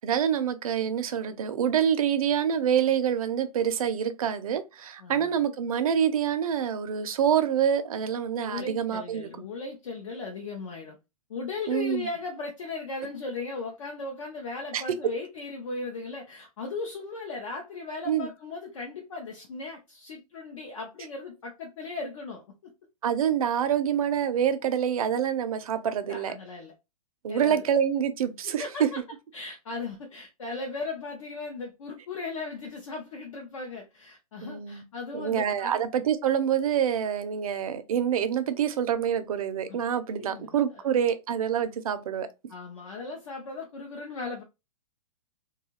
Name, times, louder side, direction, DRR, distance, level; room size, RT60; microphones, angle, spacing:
voice 1, 0.0-9.3 11.7-12.1 14.7-14.8 18.1-18.3 23.0-26.3 27.2-28.9 34.4-34.8 35.1-42.3, right 8 dB, 65° right, 0.5 m, -26 dB
voice 2, 5.0-5.4 8.4-11.0 11.3-22.7 26.1-26.7 27.3-27.7 28.4-29.0 29.3-35.8 39.7-39.8 40.2-40.9 42.5-44.4, left 3 dB, 55° left, 0.6 m, -37 dB
2.6 x 2.3 x 2.9 m
hypercardioid pair, 170°, 20 cm